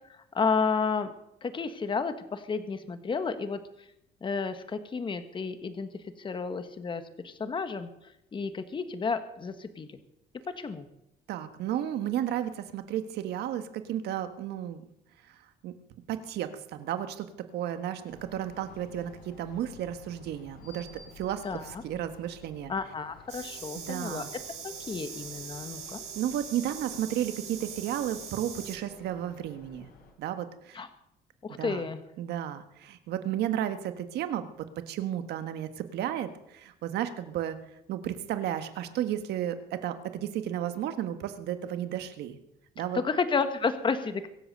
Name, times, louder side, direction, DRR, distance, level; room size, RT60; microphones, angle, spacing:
voice 1, 0.3-1.1 1.4-3.6 4.2-5.9 6.2-7.9 8.3-9.9 10.5-10.9 21.4-21.8 22.7-24.2 24.6-26.0 30.7-30.9 31.4-32.0 42.9-44.3, left 5 dB, 30° left, 9 dB, 1.4 m, -31 dB
voice 2, 11.3-14.8 15.6-15.7 16.1-17.3 17.5-20.9 21.2-22.7 23.7-24.3 26.1-29.9 30.2-30.8 31.5-31.8 32.2-34.5 34.9-37.6 37.9-42.4 42.7-43.0, right 11 dB, 75° right, 9 dB, 1.6 m, -33 dB
sound 1, 18.1-30.1, left 4 dB, 60° left, 4.8 m, -53 dB
sound 2, 23.3-28.8, right 7 dB, 40° right, 2.9 m, -42 dB
23.5 x 8.0 x 6.8 m, 0.82 s
cardioid pair, 110°, 17 cm